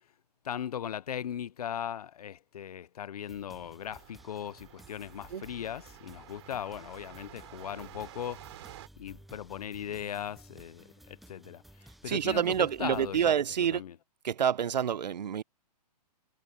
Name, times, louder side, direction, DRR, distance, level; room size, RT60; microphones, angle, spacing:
voice 1, 0.4-8.7 9.0-14.0, left 9 dB, 65° left, 0.8 m, -39 dB
sound 1, 3.2-13.3, right 1 dB, ahead, 0.6 m, -56 dB
sound 2, 3.8-8.9, right 14 dB, 40° right, 3.4 m, -51 dB
voice 2, 12.1-13.8 14.2-15.4, right 8 dB, 85° right, 0.8 m, -28 dB
hypercardioid pair, 165°, 21 cm